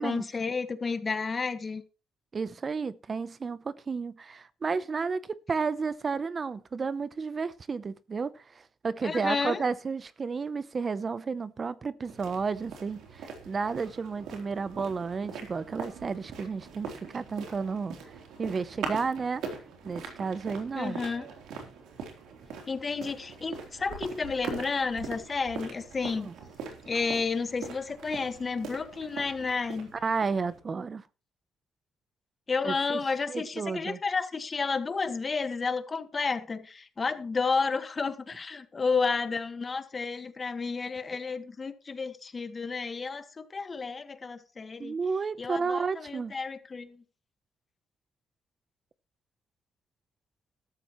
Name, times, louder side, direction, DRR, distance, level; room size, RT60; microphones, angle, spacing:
voice 1, 0.0-1.8 9.0-9.6 20.8-21.2 22.7-26.3 26.8-29.9 32.5-45.0 45.4-47.0, left 4 dB, 35° left, 1.6 m, -31 dB
voice 2, 2.3-18.0 18.4-19.4 19.8-21.0 26.2-26.3 30.0-31.0 32.6-33.0 33.3-34.0 44.8-46.3, right 5 dB, 40° right, 0.7 m, -32 dB
sound 1, 12.0-30.6, right 5 dB, 85° right, 3.6 m, -42 dB
13.5 x 13.0 x 3.1 m
cardioid pair, 90°, 0 cm